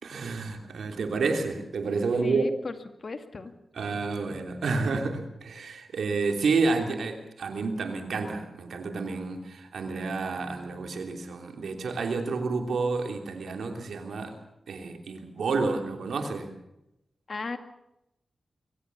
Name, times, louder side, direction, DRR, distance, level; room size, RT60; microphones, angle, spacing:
voice 1, 0.0-2.5 3.8-14.3 14.7-16.5, right 4 dB, 85° right, 5 dB, 3.1 m, -30 dB
voice 2, 2.2-3.5 17.3-17.6, left 3 dB, 55° left, 8 dB, 2.1 m, -36 dB
23.5 x 16.0 x 7.1 m, 0.87 s
cardioid pair, 55°, 0 cm